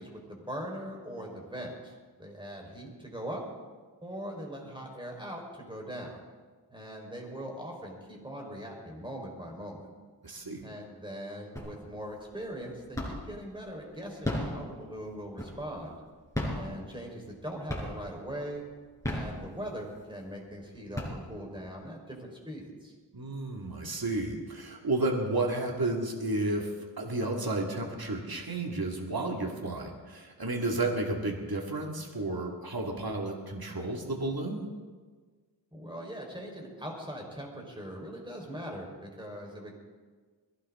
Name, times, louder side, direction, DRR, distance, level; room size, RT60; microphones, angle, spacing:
voice 1, 0.0-3.4 4.0-6.2 6.7-9.9 10.6-16.0 16.5-18.6 19.1-22.9 35.7-39.7, equal, 10° right, 0 dB, 4.3 m, -41 dB
voice 2, 10.2-10.6 23.1-26.7 27.0-34.6, right 2 dB, 55° right, 1 dB, 2.2 m, -32 dB
sound 1, 11.6-12.1 12.4-13.4 14.1-15.8 16.2-17.4 17.7-18.2 18.8-19.9 20.4-20.5 20.8-21.7, left 1 dB, 5° left, 5.3 m, -34 dB
21.5 x 16.5 x 3.7 m, 1.5 s
wide cardioid pair, 55°, 44 cm